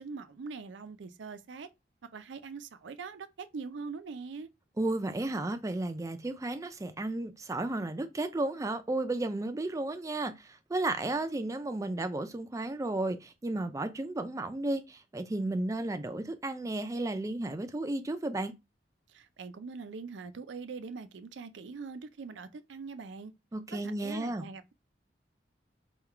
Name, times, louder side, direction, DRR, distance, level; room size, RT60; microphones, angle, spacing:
voice 1, 0.0-1.7 2.1-4.5 19.1-23.3 23.7-24.7, right 4 dB, 85° right, 0.5 m, -42 dB
voice 2, 4.8-18.5 23.5-24.5, right 2 dB, 20° right, 0.3 m, -33 dB
3.7 x 2.3 x 4.4 m
head